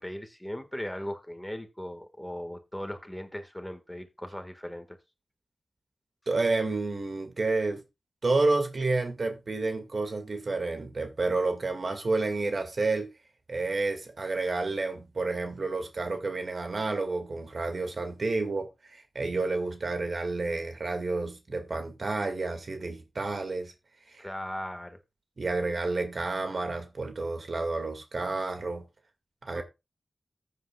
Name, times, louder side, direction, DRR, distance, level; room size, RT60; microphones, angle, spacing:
voice 1, 0.0-5.0 24.2-25.0 29.5-29.6, equal, 10° left, 1.8 m, -38 dB
voice 2, 6.3-7.8 8.2-13.1 13.5-23.7 24.1-24.3 25.4-28.8 29.5-29.6, right 3 dB, 65° right, 2.1 m, -30 dB
14.0 x 8.3 x 2.4 m
cardioid pair, 40°, 0 cm